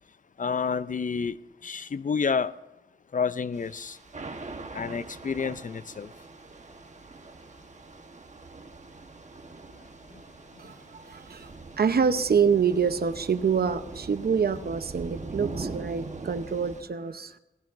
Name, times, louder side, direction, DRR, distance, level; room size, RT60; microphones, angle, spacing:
voice 1, 0.4-1.4 1.6-2.5 3.1-4.0 4.7-6.1, left 5 dB, 50° left, 15 dB, 0.5 m, -29 dB
Thunder / Rain, 3.5-16.8, right 3 dB, 45° right, 1.2 m, -42 dB
voice 2, 10.6-11.5 11.8-17.4, right 6 dB, 65° right, 10 dB, 0.8 m, -26 dB
18.5 x 17.0 x 2.6 m, 1.0 s
wide cardioid pair, 70°, 17 cm